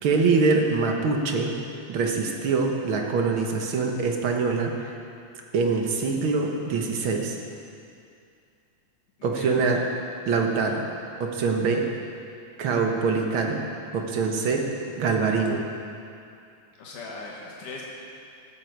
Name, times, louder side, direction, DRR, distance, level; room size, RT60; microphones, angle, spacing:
voice 1, 0.0-1.5 1.9-4.9 5.5-7.4 9.2-9.8 10.2-10.8 11.2-11.9 12.6-13.7 13.9-15.6, right 4 dB, 60° right, 2 dB, 1.5 m, -24 dB
voice 2, 9.2-9.6 16.8-17.8, left 3 dB, 90° left, -3 dB, 3.0 m, -39 dB
14.0 x 13.5 x 4.6 m, 2.5 s
omnidirectional pair, 3.5 m